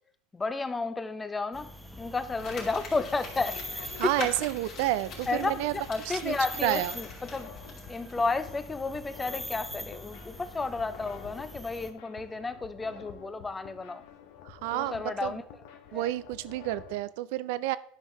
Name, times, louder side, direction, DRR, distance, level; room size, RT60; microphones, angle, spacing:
voice 1, 0.3-1.7 2.0-4.3 5.3-7.5 7.9-14.0 14.7-15.4 15.9-16.1, left 3 dB, 15° left, 12 dB, 0.7 m, -32 dB
sound 1, 1.5-11.9, equal, ahead, 1.0 m, -44 dB
sound 2, 2.3-16.9, left 7 dB, 70° left, 1.0 m, -49 dB
Crumpling crinkling, 2.4-8.1 8.4-8.5, left 4 dB, 50° left, 2.8 m, -44 dB
voice 2, 4.0-5.7 6.2-6.4 6.6-6.9 14.5-15.4 15.9-17.8, right 16 dB, 70° right, 17 dB, 0.4 m, -30 dB
11.0 x 5.5 x 3.1 m, 0.64 s
hypercardioid pair, 95°, 0 cm